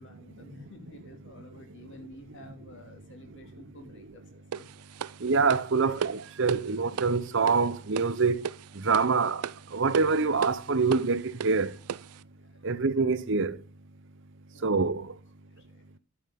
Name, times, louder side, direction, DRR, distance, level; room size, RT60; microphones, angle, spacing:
voice 1, 0.0-4.7 5.8-6.1 6.8-6.9 12.1-12.8 14.5-14.7 15.6-15.8, left 1 dB, 55° left, 2.5 m, -51 dB
voice 2, 3.3-3.8 5.2-11.8 12.6-13.6 14.6-15.2, right 4 dB, 55° right, 0.8 m, -26 dB
sound 1, 4.5-12.2, right 7 dB, 80° right, 0.4 m, -37 dB
12.5 x 6.3 x 3.6 m
head